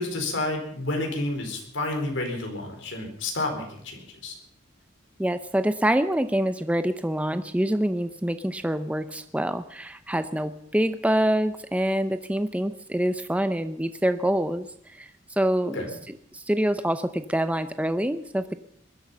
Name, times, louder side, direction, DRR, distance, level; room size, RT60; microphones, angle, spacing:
voice 1, 0.0-4.3 15.6-15.9, left 2 dB, 75° left, 3 dB, 4.3 m, -30 dB
voice 2, 5.2-15.8 16.3-18.6, right 1 dB, 5° right, 10 dB, 0.6 m, -26 dB
21.0 x 12.0 x 5.6 m, 0.65 s
head